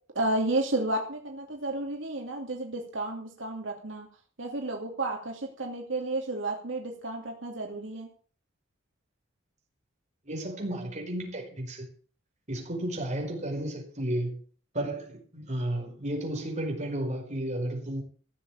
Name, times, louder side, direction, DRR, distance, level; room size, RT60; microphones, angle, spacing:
voice 1, 0.1-4.1 4.4-8.1, right 2 dB, 75° right, 2.8 m, -32 dB
voice 2, 10.2-11.9 12.5-14.4 14.7-18.0, right 1 dB, 35° right, 5.1 m, -33 dB
16.0 x 7.3 x 8.6 m
head